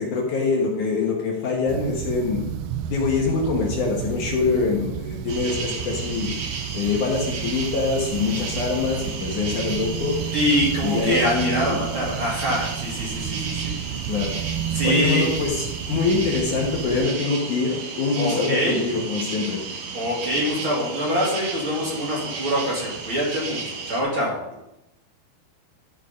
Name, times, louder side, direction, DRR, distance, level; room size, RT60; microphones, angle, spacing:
voice 1, 0.0-2.4 2.9-6.3 6.7-10.2 10.8-11.8 14.1-14.3 14.8-19.6, left 4 dB, 60° left, -1 dB, 2.5 m, -24 dB
sound 1, 1.7-17.1, right 10 dB, 80° right, 1.9 m, -31 dB
sound 2, 5.3-24.0, right 4 dB, 55° right, 2.0 m, -34 dB
voice 2, 10.3-13.7 14.7-15.3 18.2-18.8 19.9-24.4, equal, 35° right, -5 dB, 3.1 m, -24 dB
13.0 x 5.5 x 5.2 m, 0.89 s
omnidirectional pair, 4.4 m